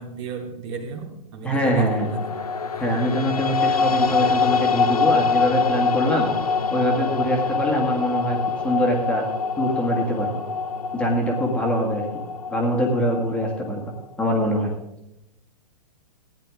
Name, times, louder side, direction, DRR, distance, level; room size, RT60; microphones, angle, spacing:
voice 1, 0.0-2.3, right 5 dB, 45° right, 2 dB, 2.7 m, -35 dB
voice 2, 1.4-2.1 2.8-6.3 6.7-8.4 8.6-9.2 9.6-10.4 10.9-12.0 12.5-13.8 14.2-14.7, equal, 5° left, -1 dB, 1.9 m, -23 dB
sound 1, 1.8-14.0, left 4 dB, 70° left, 1.1 m, -25 dB
16.5 x 10.5 x 3.7 m, 0.87 s
figure-of-eight pair, 110°, 20 cm